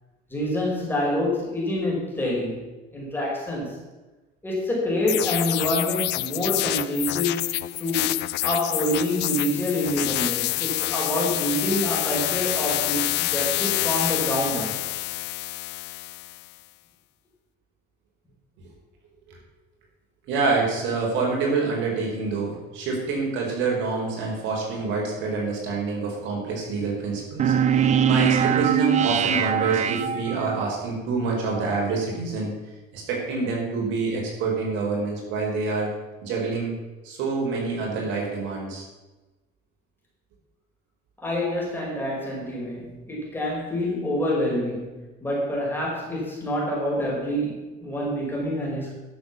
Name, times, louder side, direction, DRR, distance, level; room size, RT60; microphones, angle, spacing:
voice 1, 0.3-3.8 4.4-7.5 7.8-8.2 8.4-14.8 41.2-48.9, left 1 dB, 10° left, -4 dB, 4.9 m, -27 dB
sound 1, 5.1-16.5, left 17 dB, 60° left, 0.5 m, -27 dB
voice 2, 20.3-32.5 32.9-35.9 36.2-36.7 37.0-38.8, right 4 dB, 70° right, -1 dB, 4.4 m, -27 dB
sound 2, 27.4-30.7, right 8 dB, 35° right, 0.7 m, -22 dB
12.0 x 7.2 x 7.1 m, 1.1 s
cardioid pair, 130°, 20 cm